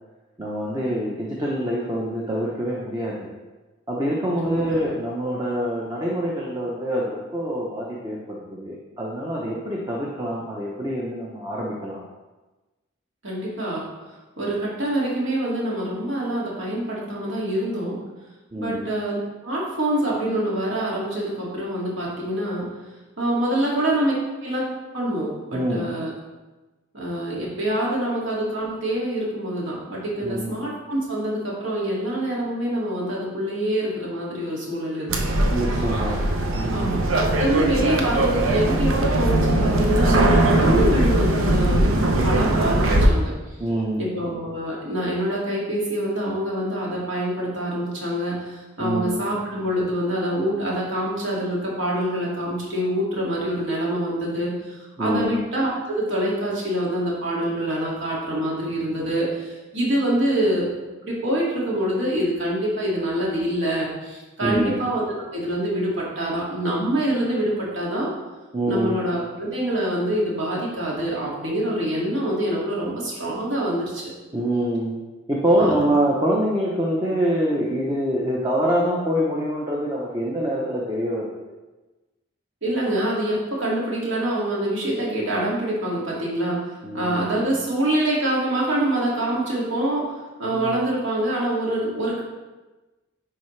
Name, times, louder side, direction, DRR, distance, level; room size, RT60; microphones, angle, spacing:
voice 1, 0.4-3.3 3.9-12.0 15.3-15.5 18.5-18.9 23.3-23.7 24.5-24.6 25.5-25.9 30.2-30.6 35.5-36.2 36.5-37.0 37.5-37.6 43.6-44.2 48.8-49.3 55.0-55.4 64.4-64.8 68.5-69.0 74.3-75.0 75.3-81.5 86.8-87.7 90.5-90.8, equal, 20° right, -4 dB, 0.8 m, -25 dB
voice 2, 4.4-4.8 13.2-13.8 14.4-18.0 18.6-19.2 19.4-22.7 23.2-24.1 24.4-24.6 24.9-26.1 26.9-35.1 36.7-41.9 42.2-43.3 44.0-60.7 61.0-68.1 68.7-74.1 75.6-75.7 82.6-86.6 86.9-90.1 90.4-92.2, right 1 dB, 65° right, -5 dB, 2.3 m, -25 dB
sound 1, 35.1-43.1, right 1 dB, 85° right, 0.8 m, -20 dB
9.9 x 4.8 x 3.3 m, 1.2 s
head